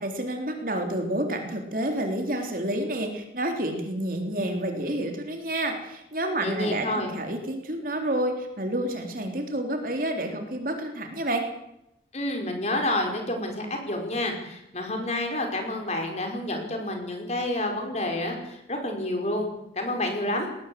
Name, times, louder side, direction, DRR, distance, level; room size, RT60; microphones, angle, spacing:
voice 1, 0.0-11.5, right 1 dB, 50° right, 4 dB, 3.8 m, -29 dB
voice 2, 6.4-7.1 12.1-19.5 19.8-20.5, left 1 dB, 35° left, 3 dB, 5.2 m, -29 dB
20.5 x 18.0 x 7.9 m, 0.83 s
head